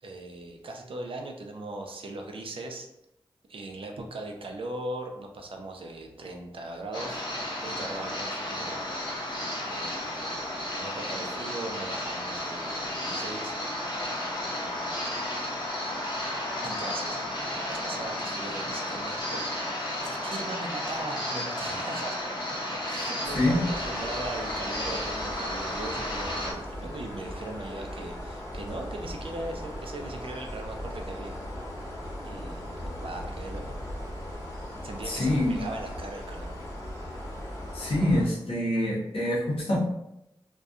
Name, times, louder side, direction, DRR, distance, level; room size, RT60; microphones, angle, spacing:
voice 1, 0.0-2.9 3.5-7.2 7.6-8.8 9.7-13.5 14.6-15.1 16.6-19.4 20.0-31.4 32.2-33.8 34.8-36.5, right 2 dB, 70° right, 2 dB, 0.4 m, -39 dB
sound 1, 6.9-26.5, left 1 dB, 50° left, 0.6 m, -33 dB
sound 2, 23.2-38.3, equal, 30° left, 0.9 m, -38 dB
voice 2, 35.0-35.6 37.7-39.8, left 1 dB, 85° left, -5 dB, 0.7 m, -25 dB
2.6 x 2.2 x 2.3 m, 0.85 s
cardioid pair, 45°, 10 cm